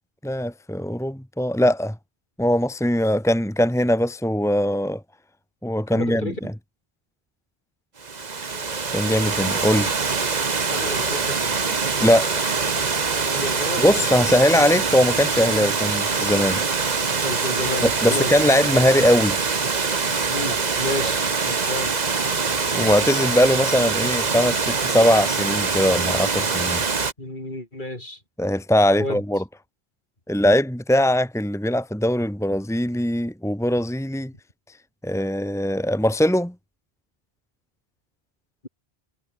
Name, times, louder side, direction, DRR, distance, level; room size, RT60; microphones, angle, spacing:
voice 1, 0.2-2.0 2.4-5.0 5.6-6.5 8.9-9.9 12.0-12.6 13.8-16.6 17.8-19.4 22.7-26.8 28.4-29.4 30.3-34.3 35.0-36.5, left 1 dB, 5° left, 1.9 m, -21 dB
voice 2, 5.9-6.4 10.7-11.4 13.3-14.0 17.2-18.3 20.3-21.9 27.2-28.2 29.0-29.2, left 1 dB, 50° left, 5.4 m, -31 dB
Water, 8.0-27.1, right 4 dB, 45° right, 1.3 m, -24 dB
omnidirectional pair, 1.0 m